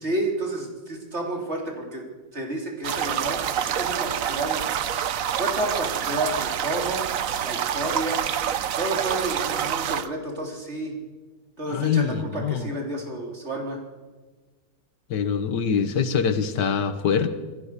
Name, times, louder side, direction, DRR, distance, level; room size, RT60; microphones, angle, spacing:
voice 1, 0.0-2.0 2.3-4.6 4.9-5.0 5.4-7.0 7.4-8.2 8.8-11.0 11.6-13.8, right 1 dB, 40° right, 1 dB, 3.7 m, -30 dB
sound 1, 2.8-10.1, right 9 dB, 60° right, 1.1 m, -27 dB
voice 2, 11.7-12.7 15.1-17.3, left 6 dB, 80° left, 11 dB, 1.8 m, -24 dB
26.5 x 15.0 x 6.7 m, 1.3 s
omnidirectional pair, 1.8 m